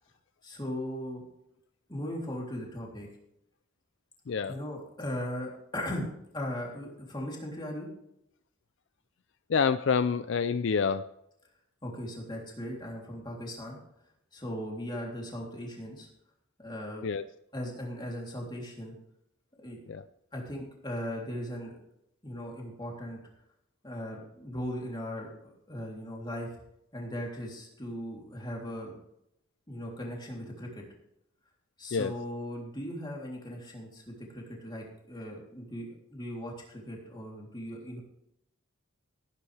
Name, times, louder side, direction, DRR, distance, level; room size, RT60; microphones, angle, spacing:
voice 1, 0.4-1.2 1.9-3.1 4.5-6.1 6.3-7.9 11.8-13.8 14.3-16.1 16.6-17.1 17.5-18.9 19.6-19.8 20.3-21.7 22.2-23.2 23.8-26.6 26.9-28.9 29.7-30.8 31.8-38.0, equal, 20° left, -2 dB, 3.3 m, -38 dB
voice 2, 9.5-11.1 17.0-17.2 19.9-20.0 31.9-32.1, left 5 dB, 60° left, 12 dB, 0.4 m, -27 dB
17.5 x 9.9 x 3.4 m, 0.79 s
head